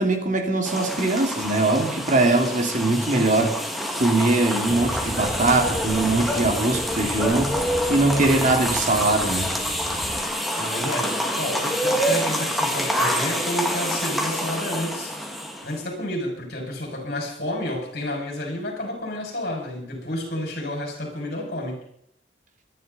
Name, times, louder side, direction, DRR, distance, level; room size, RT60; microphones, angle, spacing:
voice 1, 0.0-3.6 4.0-7.5 7.9-9.5, right 2 dB, 45° right, 4 dB, 2.5 m, -21 dB
sound 1, 0.7-15.8, equal, ahead, 2.1 m, -27 dB
sound 2, 4.7-10.2, equal, 35° left, 2.6 m, -36 dB
voice 2, 10.6-15.1 15.6-21.8, left 1 dB, 60° left, 0 dB, 6.2 m, -30 dB
23.5 x 11.0 x 4.1 m, 0.72 s
head